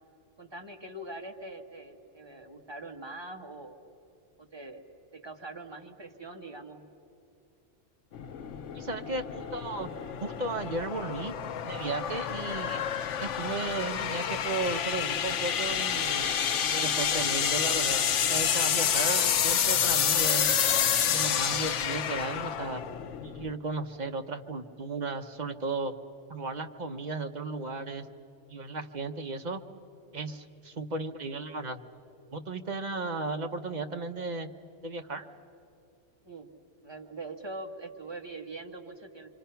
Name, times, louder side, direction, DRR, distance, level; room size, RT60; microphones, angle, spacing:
voice 1, 0.4-3.8 4.5-4.8 5.1-6.8 36.2-36.5 36.8-39.3, right 2 dB, 20° right, 2 dB, 1.4 m, -43 dB
sound 1, 8.1-23.5, left 8 dB, 75° left, 1.0 m, -29 dB
voice 2, 8.7-9.9 10.2-11.4 11.6-12.8 13.2-16.3 16.7-20.6 21.1-22.8 23.2-25.9 26.3-28.1 28.5-29.6 30.1-31.8 32.3-34.5 34.8-35.3, right 3 dB, 40° right, 6 dB, 0.9 m, -35 dB
26.0 x 25.0 x 5.7 m, 2.8 s
omnidirectional pair, 1.2 m